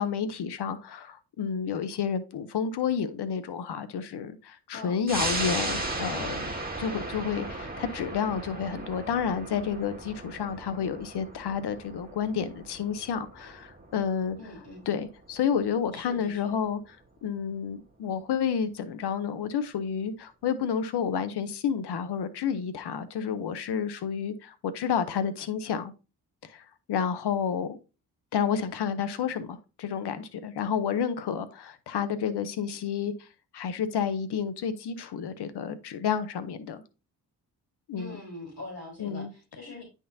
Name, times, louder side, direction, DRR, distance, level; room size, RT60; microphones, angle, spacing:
voice 1, 0.0-14.4 14.9-17.0 17.2-25.9 26.5-27.8 28.3-33.3 33.5-36.8 37.9-38.2 39.0-39.3, left 7 dB, 65° left, 0.9 m, -30 dB
sound 1, 5.1-16.0 16.4-16.5, right 2 dB, 20° right, 2.0 m, -36 dB
voice 2, 14.4-14.8 15.9-16.5 38.0-39.8, left 2 dB, 35° left, 3.7 m, -43 dB
9.9 x 3.7 x 2.7 m
supercardioid pair, 45°, 42 cm